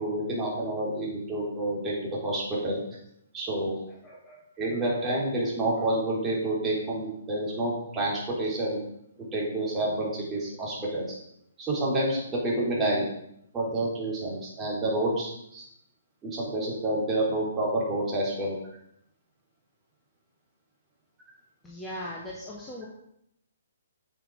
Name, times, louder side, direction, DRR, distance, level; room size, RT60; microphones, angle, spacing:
voice 1, 0.0-1.9 2.2-2.8 3.3-3.7 4.6-8.8 9.3-11.0 11.6-13.1 13.5-15.6 16.2-18.5, right 1 dB, 15° right, -5 dB, 4.1 m, -28 dB
voice 2, 3.7-4.4 4.7-5.2 5.8-5.9 21.6-22.9, left 1 dB, 10° left, -3 dB, 1.7 m, -41 dB
10.0 x 7.3 x 5.1 m, 0.75 s
figure-of-eight pair, 125°, 0 cm